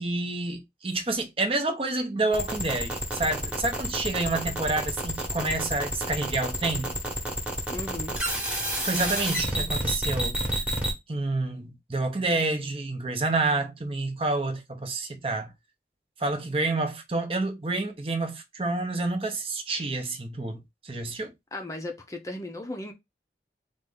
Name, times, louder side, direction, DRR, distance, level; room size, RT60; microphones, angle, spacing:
voice 1, 0.0-7.0 8.8-10.4 11.1-15.5 16.2-21.3, right 2 dB, 30° right, 0.7 m, -29 dB
sound 1, 2.3-10.9, equal, 5° right, 1.1 m, -29 dB
voice 2, 7.7-8.2 21.5-22.9, left 1 dB, 20° left, 0.6 m, -36 dB
4.2 x 2.5 x 3.7 m
head